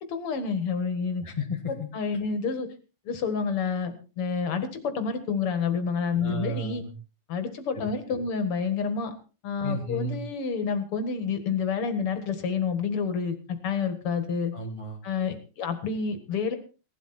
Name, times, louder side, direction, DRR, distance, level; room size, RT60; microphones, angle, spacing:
voice 1, 0.1-1.2 1.9-2.7 3.1-6.8 7.3-9.1 9.4-13.4 13.6-14.5 15.0-16.6, left 5 dB, 85° left, 9 dB, 2.7 m, -29 dB
voice 2, 1.2-1.9 6.2-6.9 7.7-8.2 9.6-10.2 14.5-15.0, left 1 dB, 15° left, 0 dB, 1.7 m, -33 dB
17.5 x 12.0 x 4.3 m, 0.34 s
omnidirectional pair, 2.4 m